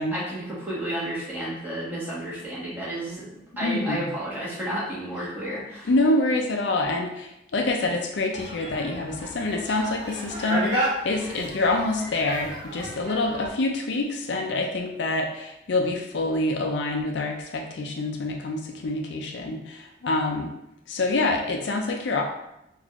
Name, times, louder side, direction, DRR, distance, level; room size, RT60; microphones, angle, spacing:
voice 1, 0.1-3.3 3.6-5.9, right 1 dB, 10° right, -9 dB, 1.3 m, -31 dB
voice 2, 3.6-4.0 5.8-20.5 20.9-22.2, left 2 dB, 65° left, 2 dB, 0.4 m, -26 dB
sound 1, 8.3-13.5, right 1 dB, 30° right, 1.4 m, -32 dB
4.0 x 2.5 x 2.9 m, 0.86 s
head